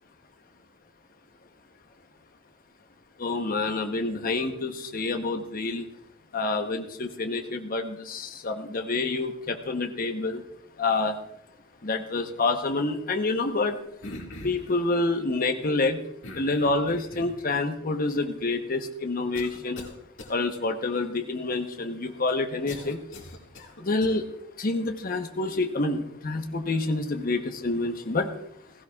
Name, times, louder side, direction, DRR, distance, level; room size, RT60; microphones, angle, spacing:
voice 1, 3.2-5.9 6.3-10.5 10.8-11.1 11.8-13.8 14.4-16.1 16.3-19.9 20.3-23.0 23.8-24.3 24.6-28.4, left 3 dB, 45° left, 4 dB, 1.0 m, -27 dB
sound 1, 14.0-14.7 16.2-17.5 18.2-18.3 19.3-19.9 20.2-20.3 22.7-24.1, left 1 dB, 65° left, 2.0 m, -41 dB
16.0 x 16.0 x 2.4 m, 0.77 s
head